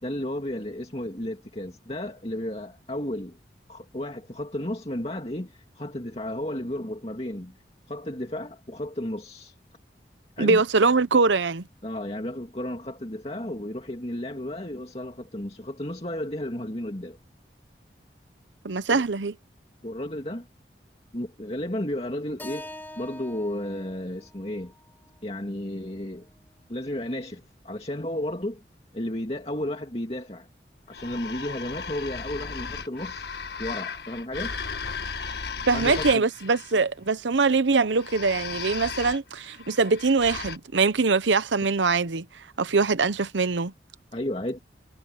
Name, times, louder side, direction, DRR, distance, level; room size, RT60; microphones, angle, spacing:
voice 1, 0.0-3.4 3.7-7.6 7.9-9.5 10.4-10.6 11.8-17.2 18.9-19.0 19.8-20.5 21.1-22.7 23.0-24.7 25.2-26.3 26.7-28.6 28.9-30.5 30.9-33.3 33.6-34.6 35.7-36.2 44.1-44.6, left 1 dB, 35° left, 2.4 m, -33 dB
voice 2, 10.4-11.6 18.6-19.3 35.7-43.7, right 4 dB, 90° right, 0.8 m, -23 dB
Keyboard (musical), 22.4-26.6, left 1 dB, 10° left, 4.2 m, -45 dB
sound 1, 30.9-36.7 37.9-40.6, left 5 dB, 65° left, 1.6 m, -35 dB
head